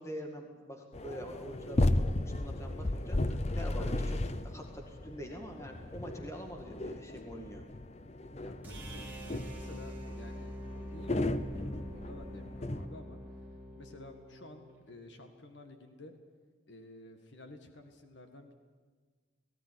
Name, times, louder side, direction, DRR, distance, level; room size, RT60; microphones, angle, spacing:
voice 1, 0.0-7.6, equal, 15° left, 3 dB, 2.0 m, -45 dB
sound 1, 0.9-12.9, left 1 dB, 35° left, 0.7 m, -34 dB
voice 2, 8.4-13.2 13.8-16.1 16.7-18.6, left 1 dB, 65° left, 6 dB, 1.9 m, -52 dB
sound 2, 8.6-14.8, equal, 10° right, 3.6 m, -45 dB
18.5 x 16.0 x 10.0 m, 1.5 s
head